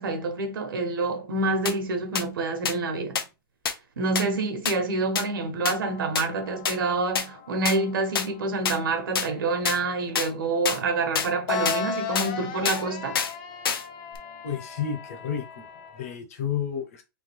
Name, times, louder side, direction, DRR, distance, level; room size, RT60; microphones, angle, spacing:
voice 1, 0.0-3.2 4.0-13.2, right 3 dB, 75° right, 1.1 m, -27 dB
sound 1, 1.7-1.8 2.2-2.3 2.7-2.8 3.2-3.3 3.7-3.8 4.2-4.3 4.7-4.8 5.2-5.3 5.7-5.8 6.2-6.3 6.7-6.8 7.2-7.3 7.7-7.8 8.2-8.3 8.7-8.8 9.2-9.3 9.7-9.8 10.2-10.3 10.7-10.8 11.2-11.3 11.7-11.8 12.2-12.3 12.7-12.8 13.2-13.3 13.7-13.8 14.1-14.2, left 6 dB, 90° left, 0.8 m, -26 dB
sound 2, 5.8-16.1, left 5 dB, 25° left, 0.5 m, -37 dB
voice 2, 14.4-17.0, left 8 dB, 40° left, 0.9 m, -31 dB
3.6 x 3.3 x 3.5 m
hypercardioid pair, 180°, 12 cm